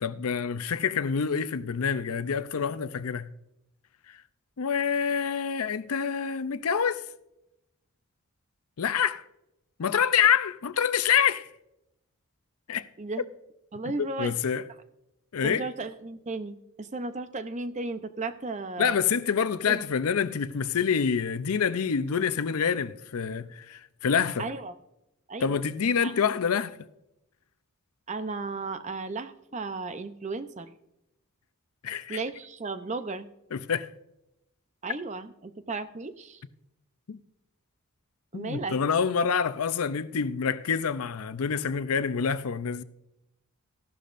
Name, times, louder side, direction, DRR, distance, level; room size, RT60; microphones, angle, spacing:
voice 1, 0.0-3.3 4.6-7.0 8.8-9.2 9.8-11.5 12.7-12.9 14.0-14.6 15.3-15.7 18.8-24.5 25.4-26.8 31.8-32.2 33.5-33.9 37.1-37.2 38.3-42.8, left 7 dB, 75° left, 0.5 m, -27 dB
voice 2, 13.7-14.3 15.4-19.0 19.7-19.8 24.4-24.7 25.3-25.5 26.0-26.1 28.1-30.7 32.1-33.3 34.8-36.4 38.3-38.8, right 3 dB, 30° right, 0.6 m, -35 dB
15.0 x 12.0 x 2.5 m
head